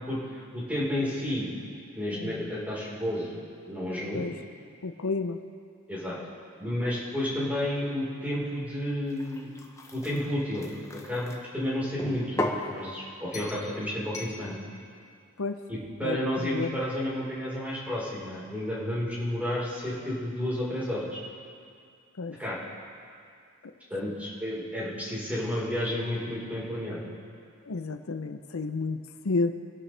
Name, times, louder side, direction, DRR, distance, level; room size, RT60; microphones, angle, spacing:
voice 1, 0.0-1.5 2.0-3.4 3.6-4.2 5.9-6.2 6.6-9.5 9.9-10.7 11.0-12.4 12.7-14.6 15.7-21.1 22.4-22.6 23.9-27.1, left 1 dB, 5° right, -7 dB, 4.2 m, -31 dB
voice 2, 2.1-2.5 4.1-4.3 4.8-5.4 15.4-15.6 16.0-16.8 22.2-22.4 27.6-29.5, left 3 dB, 80° left, 8 dB, 0.6 m, -31 dB
sound 1, 9.1-11.4 12.0-12.7 13.3-13.7 14.1-14.4, left 1 dB, 15° left, 1.0 m, -35 dB
23.5 x 11.5 x 3.4 m, 2.3 s
head